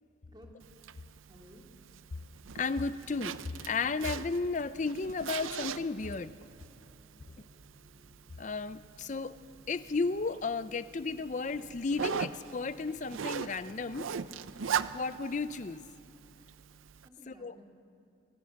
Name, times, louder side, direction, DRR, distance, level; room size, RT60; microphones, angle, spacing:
Zipper (clothing), 0.6-17.1, right 7 dB, 90° right, 0.6 m, -41 dB
voice 1, 1.2-1.6 7.1-7.4 8.8-9.1 17.0-17.7, equal, 20° right, 0 dB, 2.6 m, -57 dB
voice 2, 2.5-6.3 8.4-9.4 9.7-14.1 14.9-15.8 17.3-17.5, left 4 dB, 40° left, 15 dB, 0.5 m, -34 dB
Ode to Joy processed, 2.5-9.0 9.4-12.7 12.9-16.1, equal, 40° right, 5.0 m, -63 dB
25.5 x 16.0 x 6.4 m, 2.7 s
head